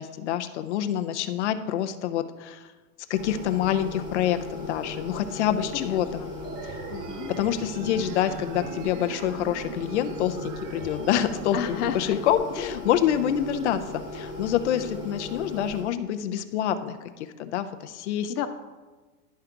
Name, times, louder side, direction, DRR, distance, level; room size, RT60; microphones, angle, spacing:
voice 1, 0.0-2.7 3.1-6.2 6.7-6.8 7.4-18.3, left 10 dB, 50° left, 8 dB, 0.5 m, -27 dB
sound 1, 3.1-15.8, left 2 dB, 15° right, 1.7 m, -37 dB
voice 2, 5.8-6.3 6.9-7.3 11.5-12.2 18.3-18.5, left 10 dB, 75° left, 9 dB, 0.9 m, -32 dB
sound 2, 6.4-11.4, right 9 dB, 80° right, 0.8 m, -42 dB
11.5 x 3.8 x 4.5 m, 1.3 s
supercardioid pair, 175°, 47 cm